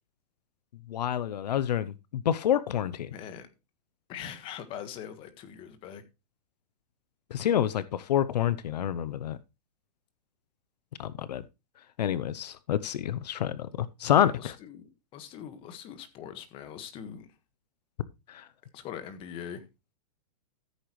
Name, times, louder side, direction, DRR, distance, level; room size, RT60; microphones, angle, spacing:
voice 1, 0.9-3.1 7.3-9.4 11.0-11.4 12.0-13.6 14.0-14.5 18.3-18.4, left 10 dB, 80° left, 0.8 m, -28 dB
voice 2, 3.1-3.5 4.1-6.0 14.1-17.3 18.7-19.6, left 8 dB, 25° left, 1.6 m, -42 dB
14.5 x 8.2 x 3.1 m
hypercardioid pair, 155°, 21 cm